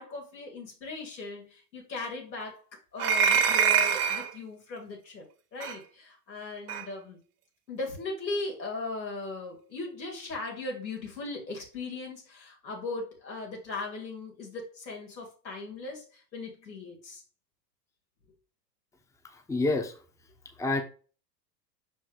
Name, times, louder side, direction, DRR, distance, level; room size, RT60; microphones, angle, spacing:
voice 1, 0.0-2.6 2.9-5.3 5.5-7.2 7.7-17.2, left 3 dB, 90° left, -1 dB, 3.1 m, -38 dB
sound 1, 3.0-4.3 5.6-5.8 6.7-6.8, right 7 dB, 65° right, 1.3 m, -24 dB
voice 2, 19.2-20.0 20.6-20.8, left 2 dB, 5° left, 5 dB, 0.9 m, -28 dB
5.8 x 5.0 x 3.8 m, 0.37 s
hypercardioid pair, 95°, 50 cm